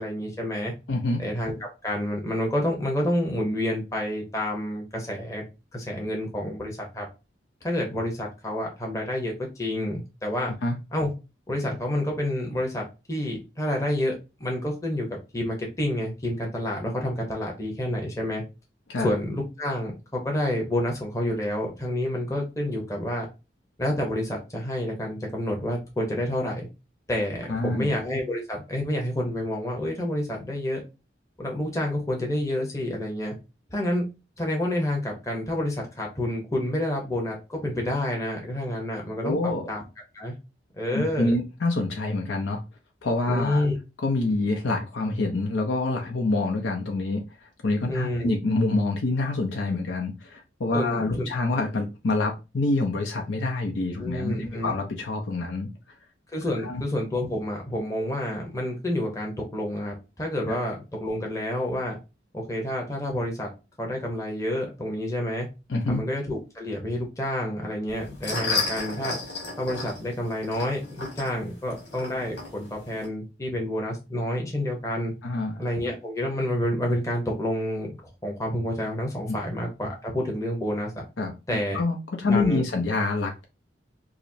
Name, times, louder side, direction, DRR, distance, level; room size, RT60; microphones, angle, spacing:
voice 1, 0.0-0.7 1.2-1.6 1.8-5.4 5.7-7.0 7.6-10.5 10.9-11.1 11.5-15.1 15.3-18.4 19.0-23.3 23.8-26.6 27.1-30.8 31.4-33.3 33.7-34.0 34.4-39.8 40.1-40.3 40.7-41.3 43.3-43.8 47.9-48.3 50.7-51.3 54.0-54.7 56.3-62.0 62.3-63.5 63.8-65.5 65.9-69.1 69.6-75.1 75.6-78.0 78.2-81.0 81.5-81.8 82.3-82.6, left 1 dB, 15° left, 0 dB, 0.8 m, -29 dB
voice 2, 0.9-1.2 10.6-10.8 18.9-19.1 27.5-27.9 39.2-39.7 40.9-42.6 43.0-43.6 44.0-47.2 47.6-55.7 56.6-56.8 65.7-66.0 75.2-75.6 79.3-79.4 81.2-81.3 81.7-83.4, left 2 dB, 85° left, 2 dB, 0.6 m, -26 dB
sound 1, 67.9-73.1, left 3 dB, 70° left, 1.9 m, -33 dB
4.8 x 2.0 x 2.7 m, 0.27 s
head